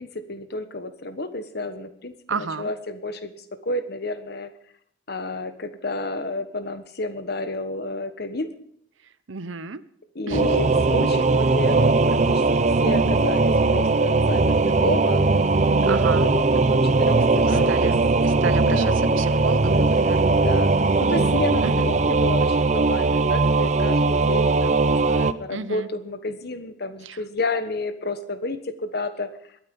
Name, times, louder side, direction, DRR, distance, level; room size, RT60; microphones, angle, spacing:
voice 1, 0.0-4.5 5.1-8.5 10.1-15.2 15.8-17.9 18.3-19.0 20.3-24.8 25.1-29.3, left 2 dB, 55° left, 10 dB, 1.3 m, -31 dB
voice 2, 2.3-2.7 9.3-9.8 10.3-10.5 15.9-16.3 17.4-18.0 18.2-20.2 21.6-21.9 25.5-25.9 27.0-27.2, right 5 dB, 80° right, 15 dB, 0.8 m, -32 dB
Singing / Musical instrument, 10.3-25.3, right 3 dB, 35° right, 0.6 m, -19 dB
21.5 x 8.9 x 5.4 m, 0.69 s
head